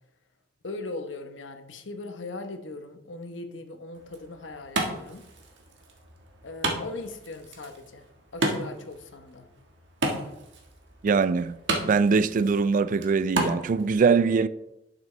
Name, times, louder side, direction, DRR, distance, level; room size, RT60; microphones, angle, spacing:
voice 1, 0.6-5.3 6.4-8.1 8.3-9.5, left 2 dB, 80° left, 1.0 m, -39 dB
Wood, 3.9-13.9, right 2 dB, 70° right, 1.5 m, -34 dB
voice 2, 11.0-11.5 11.8-14.5, right 5 dB, 45° right, 0.3 m, -22 dB
11.0 x 6.0 x 3.3 m
head